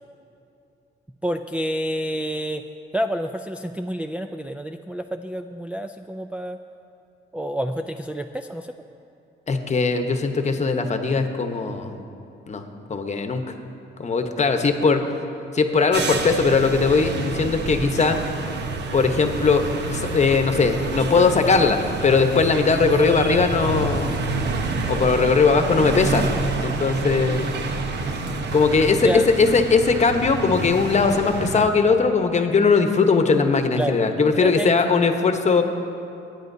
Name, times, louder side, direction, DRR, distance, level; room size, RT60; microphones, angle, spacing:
voice 1, 1.2-2.6 2.9-6.6 7.3-8.8 29.0-29.3 33.8-34.0 34.4-34.7, equal, 5° right, 4 dB, 0.3 m, -28 dB
voice 2, 9.5-12.0 12.5-12.6 12.9-13.4 14.0-15.0 15.5-18.2 18.9-24.1 24.9-26.3 26.6-27.5 28.5-29.1 29.4-35.6, left 4 dB, 35° left, 6 dB, 1.0 m, -19 dB
sound 1, 15.9-31.7, right 3 dB, 60° right, 1.0 m, -28 dB
22.5 x 9.2 x 2.7 m, 2.7 s
cardioid pair, 90°, 20 cm